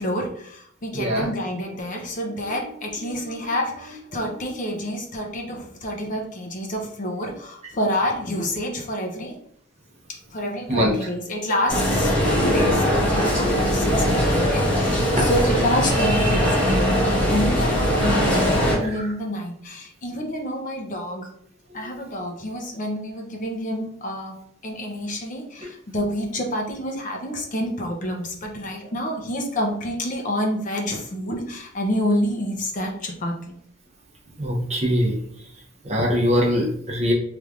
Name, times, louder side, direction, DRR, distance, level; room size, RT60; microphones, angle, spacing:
voice 1, 0.0-9.4 10.3-21.3 21.7-24.3 24.6-33.5, equal, 40° left, 1 dB, 0.6 m, -28 dB
voice 2, 0.9-1.3 2.4-3.5 4.1-4.5 10.7-10.9 13.2-13.8 15.1-15.3 18.8-19.1 21.7-21.9 25.6-25.7 34.4-35.2 35.8-37.1, equal, 35° right, -1 dB, 0.7 m, -25 dB
sound 1, 11.7-18.8, equal, 10° left, 1.4 m, -20 dB
3.3 x 3.2 x 2.4 m, 0.68 s
head